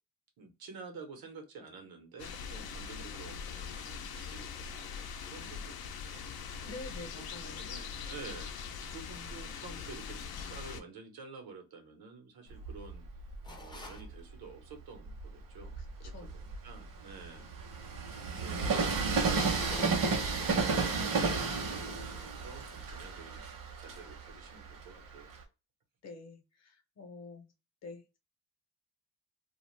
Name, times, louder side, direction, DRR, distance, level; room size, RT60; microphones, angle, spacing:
voice 1, 0.4-6.5 7.5-13.0 13.6-17.5 18.4-19.1 19.8-23.4 23.8-25.3, right 4 dB, 85° right, 4 dB, 1.0 m, -50 dB
sound 1, 2.2-10.8, left 6 dB, 85° left, 0.6 m, -42 dB
voice 2, 6.6-7.6 16.0-16.4 26.0-27.5 27.8-28.2, left 3 dB, 45° left, 5 dB, 0.7 m, -47 dB
Train, 12.5-14.2 14.8-25.4, right 4 dB, 65° right, 0.8 m, -33 dB
sound 2, 13.4-14.1 19.3-20.3, left 2 dB, 15° left, 0.4 m, -45 dB
2.4 x 2.4 x 3.1 m, 0.29 s
wide cardioid pair, 165°, 36 cm